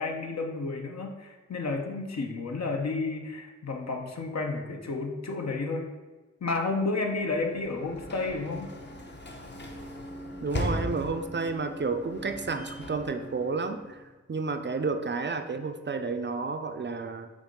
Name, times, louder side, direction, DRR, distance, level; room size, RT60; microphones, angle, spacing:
voice 1, 0.0-5.9 6.4-8.7, left 3 dB, 65° left, 2 dB, 0.9 m, -31 dB
Sliding door / Slam, 7.1-14.1, left 1 dB, 35° left, 0.8 m, -38 dB
voice 2, 10.4-14.0 14.3-17.3, right 4 dB, 40° right, 7 dB, 0.5 m, -31 dB
7.1 x 2.6 x 5.2 m, 1.2 s
wide cardioid pair, 70°, 29 cm